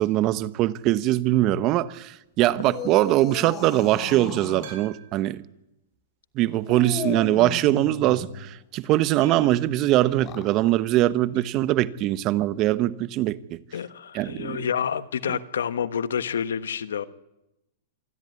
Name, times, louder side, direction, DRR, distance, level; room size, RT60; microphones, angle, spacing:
voice 1, 0.0-5.4 6.4-13.6 14.1-14.7, right 15 dB, 40° right, 1.0 m, -22 dB
sound 1, 2.5-4.8 6.7-8.5 10.1-10.6, left 5 dB, 30° left, 3.4 m, -36 dB
sound 2, 4.6-5.3 5.9-6.0 6.9-7.3 9.2-9.7 11.3-11.6 11.9-12.0 12.3-12.4 14.4-14.5, right 7 dB, 70° right, 7.3 m, -47 dB
voice 2, 13.7-17.1, left 7 dB, 90° left, 1.2 m, -28 dB
26.0 x 13.5 x 9.6 m
hypercardioid pair, 130°, 0 cm